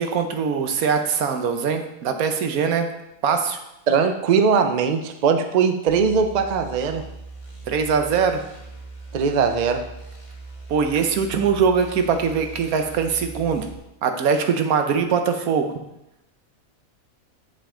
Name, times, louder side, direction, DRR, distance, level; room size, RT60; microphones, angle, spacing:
voice 1, 0.0-2.9 3.2-3.6 7.7-8.4 10.7-13.7 14.0-15.7, right 6 dB, 85° right, 6 dB, 1.2 m, -22 dB
voice 2, 3.9-7.0 9.1-9.8, right 6 dB, 55° right, 7 dB, 0.5 m, -20 dB
sound 1, 5.9-13.8, right 3 dB, 25° left, 1.1 m, -40 dB
7.5 x 5.5 x 3.7 m, 0.88 s
omnidirectional pair, 1.5 m